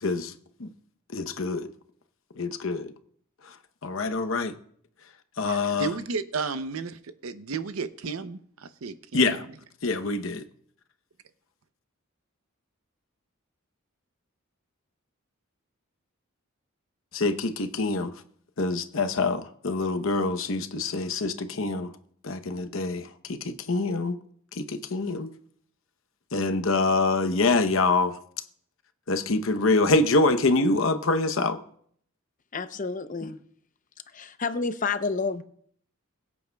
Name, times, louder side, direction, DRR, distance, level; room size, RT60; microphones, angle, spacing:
voice 1, 0.0-0.3 0.6-0.7 1.1-1.7 2.4-2.9 3.8-4.5 5.4-5.9 9.1-9.4 9.8-10.4 17.1-18.1 18.6-21.9 22.2-24.2 24.5-25.3 26.3-28.2 29.1-31.6, left 3 dB, 70° left, 0.8 m, -25 dB
voice 2, 5.5-9.4, right 4 dB, 80° right, 0.7 m, -33 dB
voice 3, 32.5-33.4 34.1-35.4, left 4 dB, 40° left, 0.6 m, -29 dB
22.0 x 8.4 x 2.3 m
head